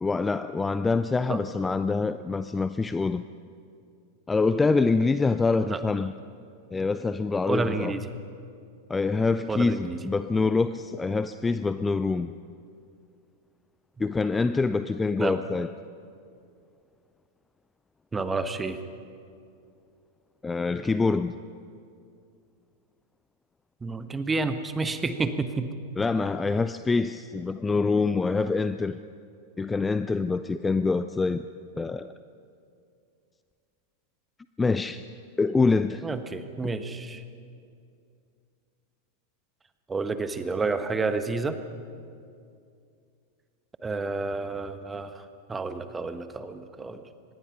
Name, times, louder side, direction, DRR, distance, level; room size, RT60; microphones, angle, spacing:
voice 1, 0.0-3.2 4.3-6.1 6.7-7.9 8.9-12.3 14.0-15.7 20.4-21.3 26.0-29.0 29.6-31.4 31.8-32.1 34.6-35.0 35.4-36.0, left 4 dB, 10° left, 13 dB, 0.5 m, -25 dB
voice 2, 7.5-8.1 9.5-10.0 15.2-15.4 18.1-18.8 23.8-25.7 36.0-37.2 39.9-41.6 43.8-45.2 45.5-47.0, right 3 dB, 15° right, 10 dB, 1.3 m, -30 dB
24.5 x 20.5 x 5.6 m, 2.4 s
figure-of-eight pair, 90°, 0 cm